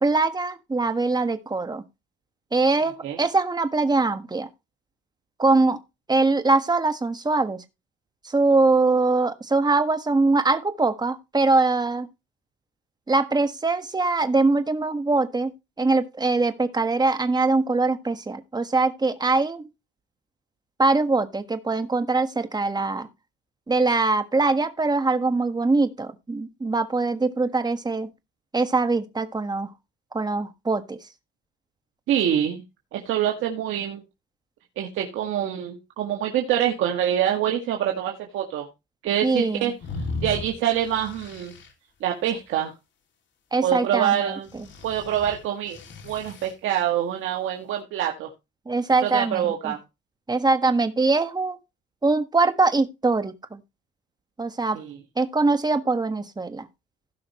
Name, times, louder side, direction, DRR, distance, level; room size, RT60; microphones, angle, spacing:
voice 1, 0.0-1.8 2.5-4.5 5.4-5.8 6.1-7.6 8.2-12.1 13.1-19.7 20.8-23.1 23.7-28.1 28.5-29.7 30.1-31.0 39.2-39.7 43.5-44.6 48.7-49.8 50.3-51.6 52.0-53.6 54.4-54.8 55.2-56.7, right 3 dB, 20° right, 1.4 m, -22 dB
voice 2, 32.1-32.6 32.9-34.0 34.7-38.7 39.0-39.7 40.2-41.5 42.0-42.7 43.6-44.5 44.8-45.8 46.0-48.3 49.0-49.8 54.7-55.0, right 10 dB, 85° right, 1.7 m, -25 dB
sound 1, 39.8-41.7 44.5-46.5, left 3 dB, 65° left, 2.6 m, -36 dB
16.5 x 5.6 x 3.1 m
cardioid pair, 90°, 20 cm